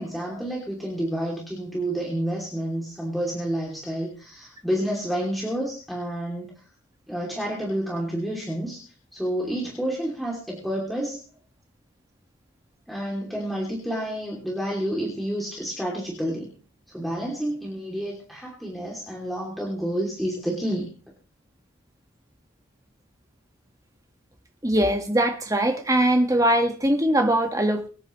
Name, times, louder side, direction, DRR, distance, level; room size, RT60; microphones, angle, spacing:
voice 1, 0.0-6.6 7.1-8.8 9.1-11.2 12.9-16.5 16.9-20.9, right 1 dB, ahead, 2.8 m, -29 dB
voice 2, 24.6-27.9, right 1 dB, 15° right, 1.6 m, -21 dB
24.0 x 9.8 x 3.2 m
head